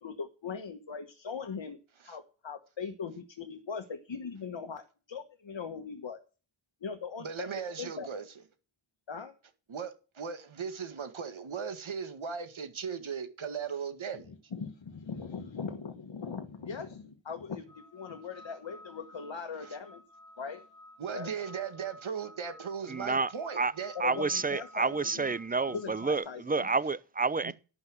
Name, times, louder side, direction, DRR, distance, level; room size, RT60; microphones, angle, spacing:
voice 1, 0.0-1.8 2.0-6.2 6.8-7.5 7.8-8.1 9.1-9.3 14.3-20.0 20.4-20.6 21.1-21.3 23.9-25.3 25.7-26.7, left 5 dB, 70° left, 1.5 m, -40 dB
voice 2, 7.2-8.3 9.7-14.3 19.6-19.8 21.0-23.9 27.4-27.5, right 6 dB, 85° right, 1.9 m, -37 dB
sound 1, 17.7-26.2, left 1 dB, 10° left, 2.6 m, -54 dB
voice 3, 22.9-23.7 24.0-27.5, right 4 dB, 20° right, 0.7 m, -29 dB
11.5 x 5.9 x 7.7 m
cardioid pair, 60°, 46 cm